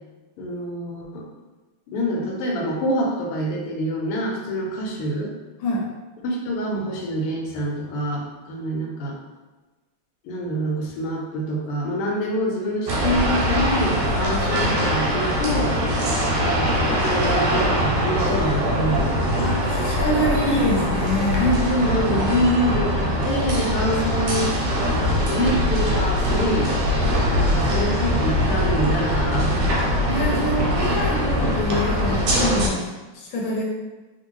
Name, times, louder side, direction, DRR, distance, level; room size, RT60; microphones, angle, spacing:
voice 1, 0.4-1.2 1.9-5.3 6.2-9.2 10.3-15.8 16.4-19.3 21.4-24.6 25.3-26.8 27.3-29.7, equal, 85° left, -1 dB, 1.7 m, -26 dB
sound 1, 12.9-32.7, equal, 75° right, 1.4 m, -22 dB
voice 2, 19.4-21.5 30.1-33.6, left 1 dB, 70° left, -3 dB, 1.3 m, -25 dB
3.5 x 2.5 x 3.0 m, 1.2 s
omnidirectional pair, 2.4 m